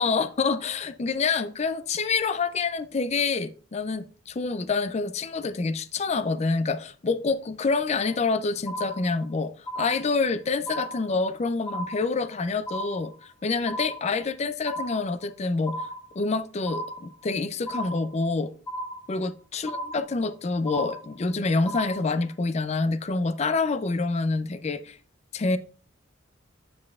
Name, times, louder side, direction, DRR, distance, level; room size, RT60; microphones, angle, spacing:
voice 1, 0.0-15.8 16.2-18.5 19.1-25.0 25.3-25.6, left 4 dB, 35° left, 0.4 m, -27 dB
sound 1, 8.0-8.3 8.7-9.3 9.7-10.3 10.7-11.3 11.7-12.3 12.7-13.3 13.7-14.3 14.7-15.3 15.7-16.3 16.7-17.3 17.7-18.3 18.7-19.3 19.7-20.3 20.7-21.3 21.7-22.3, right 1 dB, 15° left, 0.9 m, -36 dB
8.5 x 7.1 x 2.4 m
head